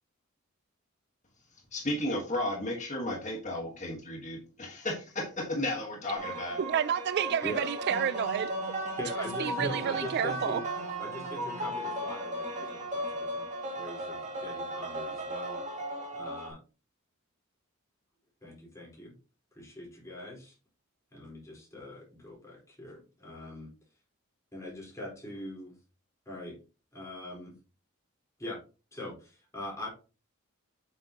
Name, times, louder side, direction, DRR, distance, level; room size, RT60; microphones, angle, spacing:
voice 1, 1.7-6.6, left 1 dB, 35° left, 1.5 m, -33 dB
sound 1, 6.1-16.5, right 1 dB, 35° right, 2.2 m, -36 dB
voice 2, 6.6-8.5 9.4-10.6, right 8 dB, 50° right, 0.3 m, -30 dB
voice 3, 9.0-10.6 11.0-13.5 13.7-15.6 16.1-16.6 18.4-19.1 19.6-20.5 21.1-23.7 24.5-25.7 26.3-26.5 26.9-27.5 28.4-28.6 28.9-29.9, left 1 dB, 15° left, 4.2 m, -41 dB
8.4 x 6.7 x 2.9 m
head